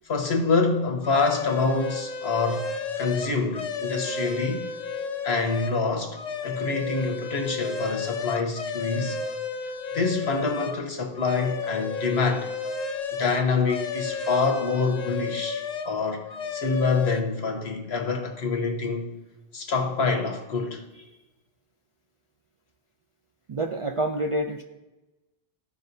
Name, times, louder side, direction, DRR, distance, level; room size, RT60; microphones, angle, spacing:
voice 1, 0.1-2.7 3.0-4.6 5.2-9.2 9.9-12.5 13.2-19.1 19.5-20.8, left 4 dB, 85° left, 1.3 m, -26 dB
sound 1, 1.0-5.8 6.1-10.8 11.2-15.9 16.3-17.2, left 5 dB, 50° left, 0.6 m, -32 dB
voice 2, 23.5-24.6, right 1 dB, 60° right, 0.3 m, -27 dB
13.5 x 5.1 x 2.7 m
omnidirectional pair, 1.0 m